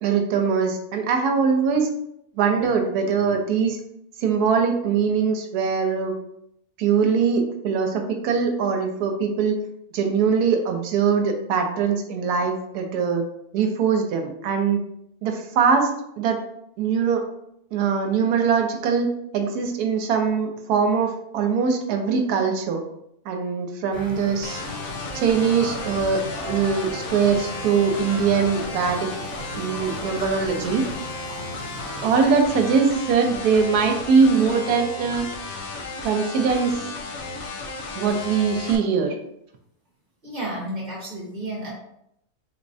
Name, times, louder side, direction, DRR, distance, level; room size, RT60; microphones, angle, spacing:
voice 1, 0.0-1.9 2.4-3.8 4.2-6.1 6.8-9.6 9.9-13.2 13.5-14.8 15.2-15.9 16.2-16.4 16.8-17.2 17.7-19.1 19.3-22.8 23.2-24.6 25.1-29.1 29.5-30.8 32.0-35.3 36.0-36.8 37.9-39.2, right 6 dB, 80° right, 4 dB, 1.1 m, -22 dB
sound 1, 23.9-32.4, equal, 15° right, 0.6 m, -37 dB
sound 2, 24.4-38.8, left 3 dB, 65° left, 0.9 m, -34 dB
voice 2, 40.2-41.7, right 1 dB, 35° right, -5 dB, 1.0 m, -31 dB
3.6 x 3.1 x 2.6 m, 0.77 s
omnidirectional pair, 1.7 m